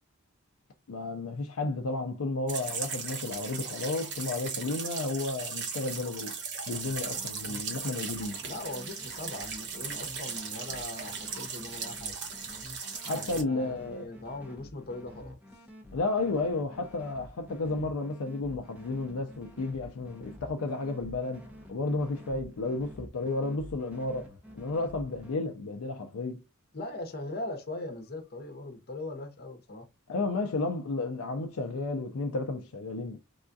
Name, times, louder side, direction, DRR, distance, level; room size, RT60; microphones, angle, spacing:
voice 1, 0.9-6.3 6.7-8.4 13.0-14.1 15.9-24.3 24.5-26.4 30.1-33.2, left 3 dB, 65° left, 0.4 m, -32 dB
sound 1, 2.5-13.4, right 5 dB, 50° right, 1.0 m, -37 dB
sound 2, 6.7-25.4, left 1 dB, 5° right, 0.7 m, -49 dB
voice 2, 8.4-12.1 13.0-15.4 26.7-29.9, left 2 dB, 45° left, 0.8 m, -40 dB
3.5 x 2.3 x 2.5 m
head